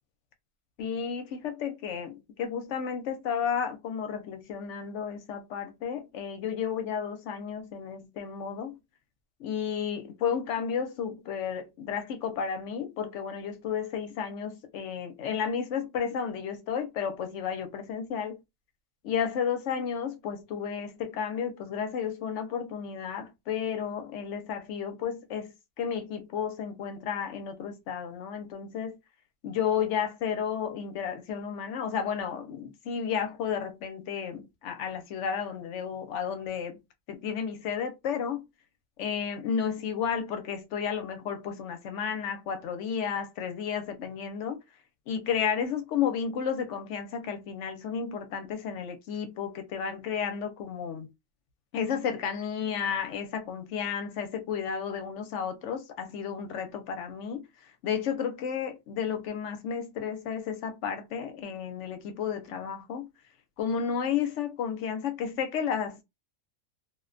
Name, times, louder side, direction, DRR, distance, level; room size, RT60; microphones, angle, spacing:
voice 1, 0.8-8.8 9.4-18.4 19.0-29.0 29.4-36.8 37.1-38.5 39.0-44.6 45.1-51.1 51.7-63.1 63.6-66.0, left 7 dB, 65° left, 0.8 m, -32 dB
2.3 x 2.1 x 2.4 m
omnidirectional pair, 1.4 m